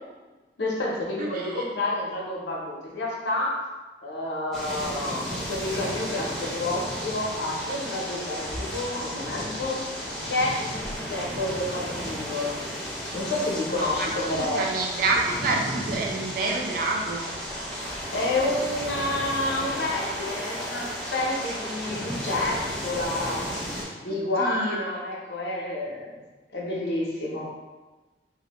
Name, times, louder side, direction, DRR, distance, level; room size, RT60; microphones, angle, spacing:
voice 1, 0.6-3.6 4.0-12.5 13.1-14.6 18.1-23.5 24.0-26.2 26.5-27.5, left 2 dB, 70° left, -3 dB, 0.6 m, -29 dB
voice 2, 1.2-1.6 13.8-17.2 24.4-25.0, right 3 dB, 55° right, 0 dB, 0.4 m, -28 dB
sound 1, 4.5-23.8, equal, ahead, 0.6 m, -34 dB
2.5 x 2.1 x 2.9 m, 1.2 s
head